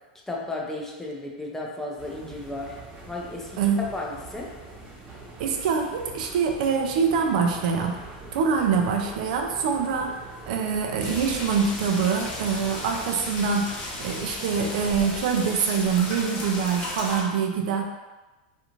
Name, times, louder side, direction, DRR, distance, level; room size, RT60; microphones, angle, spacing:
voice 1, 0.3-2.8 3.1-4.5, left 2 dB, 10° left, -1 dB, 0.5 m, -34 dB
sound 1, 2.0-15.2, right 3 dB, 25° right, 0.8 m, -44 dB
voice 2, 5.4-10.2 10.5-17.8, right 6 dB, 70° right, 2 dB, 0.4 m, -25 dB
sound 2, 11.0-17.2, left 1 dB, 35° left, 0.8 m, -35 dB
2.5 x 2.4 x 2.9 m, 1.2 s
hypercardioid pair, 115°, 5 cm